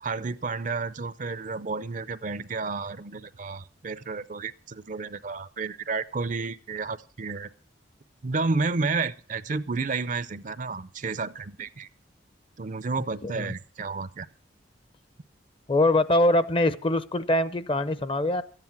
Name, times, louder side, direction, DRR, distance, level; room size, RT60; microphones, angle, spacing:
voice 1, 0.0-7.5 8.2-11.9 12.6-14.3, right 4 dB, 45° right, 0.5 m, -31 dB
voice 2, 13.2-13.5 15.7-18.4, left 1 dB, 30° left, 0.6 m, -23 dB
13.5 x 9.8 x 5.9 m
head